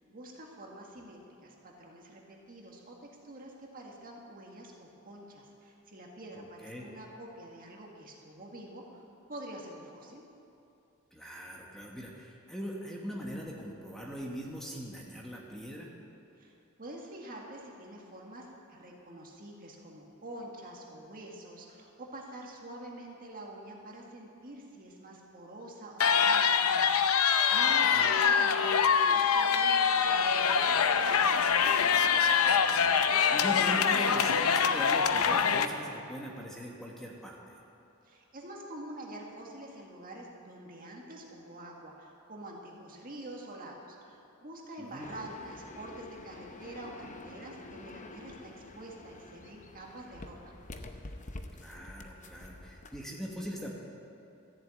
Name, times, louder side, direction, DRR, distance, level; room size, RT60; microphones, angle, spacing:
voice 1, 0.0-9.0 9.3-10.2 16.4-16.5 16.8-31.0 38.0-50.6, right 1 dB, 40° right, -1 dB, 1.8 m, -47 dB
voice 2, 6.4-6.9 11.1-15.9 27.6-28.0 31.9-37.6 44.8-45.1 51.5-53.7, equal, ahead, -2 dB, 1.3 m, -41 dB
sound 1, 26.0-35.6, left 6 dB, 90° left, 0.6 m, -24 dB
sound 2, 45.0-53.0, left 2 dB, 35° left, 0.8 m, -47 dB
14.0 x 7.4 x 8.8 m, 2.7 s
head